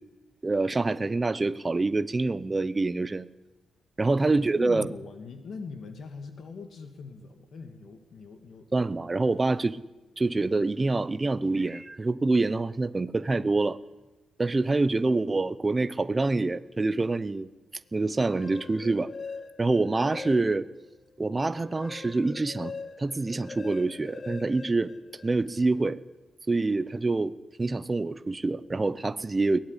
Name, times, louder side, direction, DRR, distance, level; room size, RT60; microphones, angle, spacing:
voice 1, 0.4-3.3 4.0-4.9 8.7-9.8 10.2-13.8 14.4-17.5 17.9-19.1 19.6-20.7 21.2-24.9 25.2-26.0 26.5-27.3 27.6-29.6, right 3 dB, 15° right, 14 dB, 0.8 m, -26 dB
voice 2, 4.6-8.7, left 4 dB, 45° left, 6 dB, 2.5 m, -42 dB
sound 1, 18.1-20.8 21.3-25.6, left 4 dB, 30° left, 0.7 m, -42 dB
22.5 x 18.0 x 9.9 m, 1.1 s
wide cardioid pair, 170°, 0 cm